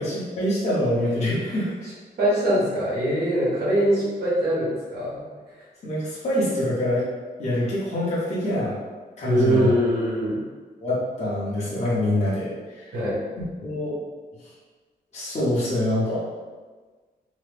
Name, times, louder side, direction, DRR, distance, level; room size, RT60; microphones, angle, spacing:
voice 1, 0.0-1.7 5.8-7.1 7.4-8.8 9.2-9.7 10.8-12.9 13.6-14.0 15.1-16.2, left 1 dB, 40° left, -9 dB, 0.9 m, -25 dB
voice 2, 2.2-5.2 9.2-10.4 12.9-13.2, equal, 80° right, -10 dB, 1.3 m, -22 dB
3.0 x 2.1 x 3.3 m, 1.4 s
wide cardioid pair, 175°, 17 cm